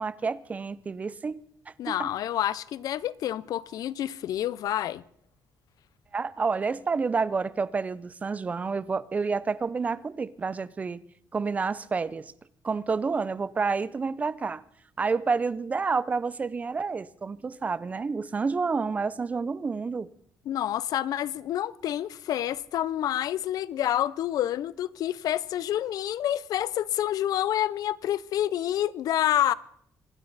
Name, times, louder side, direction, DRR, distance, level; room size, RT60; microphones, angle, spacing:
voice 1, 0.0-2.1 6.1-11.0 11.3-12.3 12.6-14.6 15.0-20.1, right 4 dB, 20° right, 0.5 m, -29 dB
voice 2, 1.8-5.0 20.5-29.5, left 12 dB, 65° left, 0.6 m, -28 dB
25.5 x 12.5 x 4.0 m
cardioid pair, 170°, 7 cm